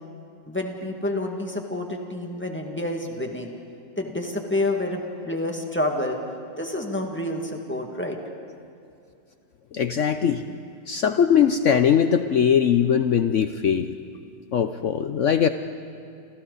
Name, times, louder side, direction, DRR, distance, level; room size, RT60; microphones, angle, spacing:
voice 1, 0.5-3.6 4.0-6.2 6.6-8.2, left 1 dB, 5° left, 1 dB, 1.9 m, -28 dB
voice 2, 9.7-10.4 10.9-13.9 14.5-15.5, left 8 dB, 65° left, 9 dB, 0.7 m, -20 dB
29.5 x 28.0 x 4.1 m, 2.4 s
omnidirectional pair, 2.0 m